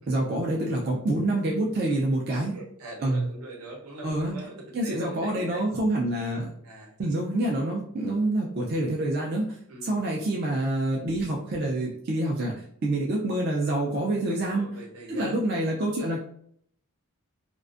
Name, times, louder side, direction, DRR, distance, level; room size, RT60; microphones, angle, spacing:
voice 1, 0.1-2.6 3.0-3.3 4.0-4.3 4.7-6.5 7.0-12.5 12.8-14.8 15.1-16.2, right 1 dB, 45° right, -2 dB, 0.3 m, -27 dB
voice 2, 2.3-5.7 6.6-7.1 8.0-8.1 9.7-9.9 13.8-15.4, right 1 dB, 85° right, -1 dB, 0.8 m, -43 dB
2.4 x 2.2 x 2.4 m, 0.66 s
head